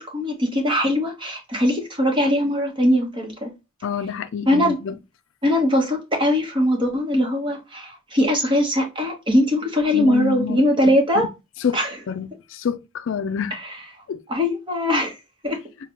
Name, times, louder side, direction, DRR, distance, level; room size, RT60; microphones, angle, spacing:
voice 1, 0.0-3.5 4.5-4.8 5.4-11.3 11.7-12.0 13.5-13.8 14.3-15.2 15.4-15.6, left 1 dB, 20° right, 1.0 m, -21 dB
voice 2, 3.8-4.9 9.9-10.6 11.6-11.8 12.1-13.6 14.1-14.2, left 7 dB, 60° left, 0.3 m, -27 dB
5.7 x 2.2 x 2.9 m
head